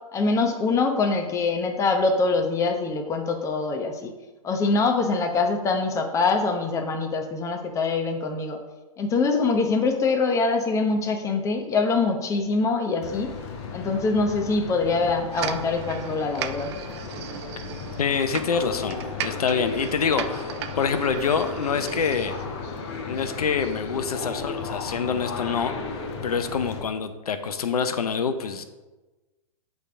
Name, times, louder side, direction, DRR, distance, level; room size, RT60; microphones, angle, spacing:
voice 1, 0.1-4.1 4.4-8.6 9.0-13.3 13.7-16.8, left 3 dB, 15° left, 4 dB, 0.8 m, -24 dB
sound 1, 13.0-26.8, left 4 dB, 45° left, 1.1 m, -35 dB
sound 2, 15.3-22.5, right 10 dB, 45° right, 0.5 m, -37 dB
voice 2, 18.0-19.0 19.2-22.3 23.1-25.7 26.2-28.6, left 6 dB, 80° left, 9 dB, 0.7 m, -26 dB
8.3 x 3.4 x 4.8 m, 1.2 s
hypercardioid pair, 125°, 19 cm